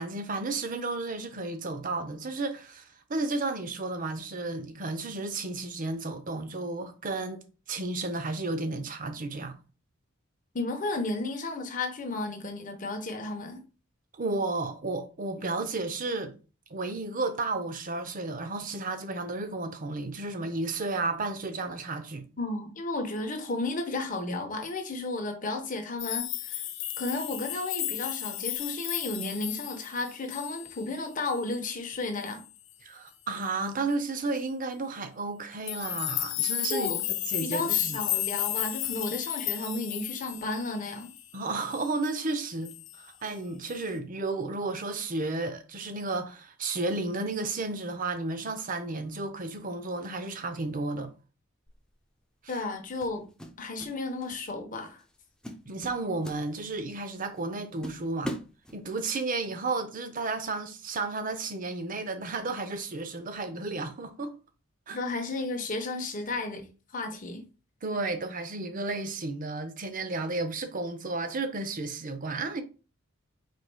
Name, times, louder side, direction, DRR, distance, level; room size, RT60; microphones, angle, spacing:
voice 1, 0.0-9.6 14.1-16.3 16.7-22.3 32.8-36.9 37.3-38.0 41.3-51.1 55.7-58.4 58.7-64.3 64.9-65.0 67.8-72.6, right 3 dB, 40° right, 0.6 m, -33 dB
voice 2, 10.5-13.6 22.4-26.6 27.0-32.4 36.7-37.0 37.4-41.1 52.5-53.2 53.6-55.0 64.9-66.7 66.9-67.4, left 2 dB, 40° left, 1.0 m, -33 dB
sound 1, 26.0-31.0 31.2-31.6 32.2-32.5 35.7-41.3 41.7-42.2 42.6-43.0 43.6-43.8, left 14 dB, 65° left, 0.6 m, -33 dB
sound 2, 51.7-51.9 53.0-54.0 54.2-54.5 55.0-55.2 55.4-56.9 57.4-57.5 57.8-59.1, equal, 5° left, 0.5 m, -40 dB
4.9 x 4.2 x 2.2 m
head